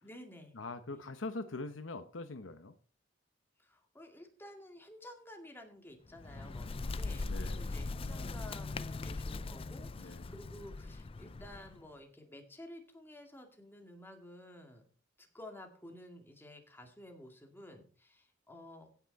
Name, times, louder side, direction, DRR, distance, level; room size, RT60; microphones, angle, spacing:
voice 1, 0.0-0.6 0.9-1.0 3.6-14.8 15.2-18.9, left 1 dB, 10° left, 2.1 m, -52 dB
voice 2, 0.5-2.7 7.2-7.6 10.0-10.3, left 3 dB, 80° left, 0.9 m, -43 dB
Bird, 6.1-11.8, left 3 dB, 30° left, 0.4 m, -40 dB
16.5 x 6.0 x 4.1 m
head